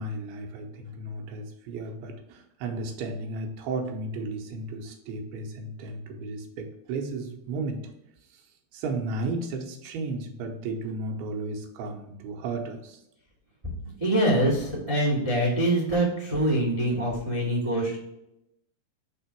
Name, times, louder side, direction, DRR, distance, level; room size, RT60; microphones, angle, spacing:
voice 1, 0.0-7.9 8.3-8.5 8.7-13.0, right 2 dB, 85° right, 3 dB, 2.8 m, -34 dB
voice 2, 14.0-18.0, right 1 dB, 70° right, -4 dB, 0.3 m, -24 dB
6.6 x 3.6 x 4.5 m, 0.85 s
omnidirectional pair, 4.5 m